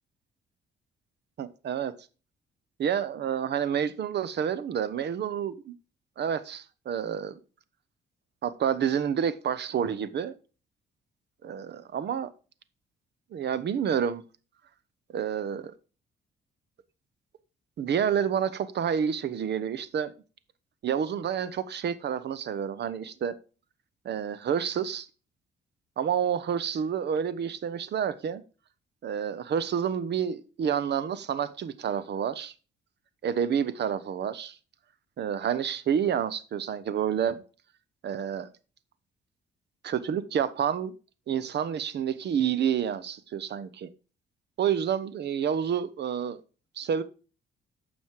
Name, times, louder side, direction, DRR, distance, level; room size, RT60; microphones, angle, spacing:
voice 1, 1.4-1.9 2.8-5.7 6.2-7.3 8.4-10.3 11.4-12.3 13.3-14.2 15.1-15.7 17.8-20.1 20.8-23.3 24.0-25.1 26.0-28.4 29.0-32.5 33.2-34.6 35.2-37.4 38.0-38.5 39.8-40.9 41.3-43.9 44.6-46.4 46.8-47.0, right 8 dB, 60° right, 1.0 m, -29 dB
9.4 x 6.3 x 4.7 m
cardioid pair, 90°, 20 cm